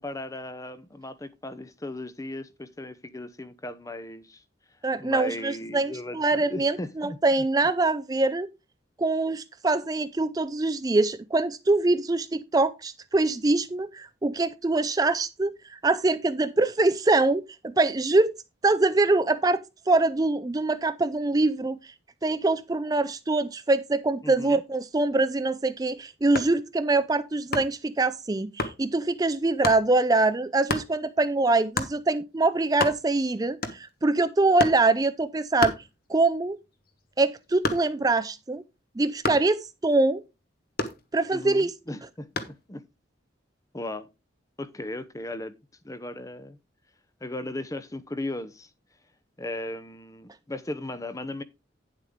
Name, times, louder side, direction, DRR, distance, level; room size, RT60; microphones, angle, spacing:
voice 1, 0.0-4.4 5.0-7.2 24.2-24.6 41.3-42.8 43.7-44.1 44.6-45.5 45.8-46.6 47.2-48.7 49.4-51.4, left 1 dB, 15° left, 0.7 m, -36 dB
voice 2, 4.8-8.5 9.0-18.3 18.6-21.9 22.2-35.7 36.1-36.6 37.2-38.6 39.0-40.2 41.1-41.7, right 2 dB, 20° right, 0.4 m, -24 dB
sound 1, 26.2-26.6 27.5-27.9 28.6-28.8 29.6-29.9 30.7-30.9 31.8-32.0 32.4-32.5 32.7-33.2 33.6-34.0 34.6-34.9 35.6-36.4 36.7-38.1 39.2-39.6 40.8-41.5 42.4-42.6, left 2 dB, 50° left, 1.3 m, -30 dB
9.9 x 7.5 x 3.6 m
head